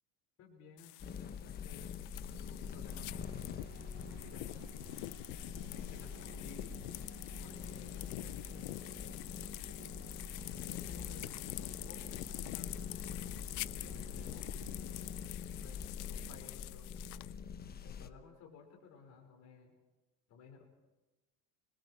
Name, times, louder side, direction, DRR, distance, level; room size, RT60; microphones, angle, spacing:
voice 1, 0.4-1.9 2.4-3.5 4.0-4.8 5.7-6.8 7.4-9.2 10.5-12.8 13.5-14.7 15.6-16.9 17.6-19.8 20.3-20.6, left 5 dB, 50° left, 1 dB, 5.2 m, -57 dB
sound 1, 0.8-17.3, left 21 dB, 80° left, 0.7 m, -47 dB
sound 2, 1.0-18.1, left 7 dB, 25° left, 1.1 m, -45 dB
sound 3, 2.9-15.3, right 8 dB, 45° right, 2.9 m, -57 dB
30.0 x 22.0 x 4.6 m, 1.1 s
cardioid pair, 130°, 35 cm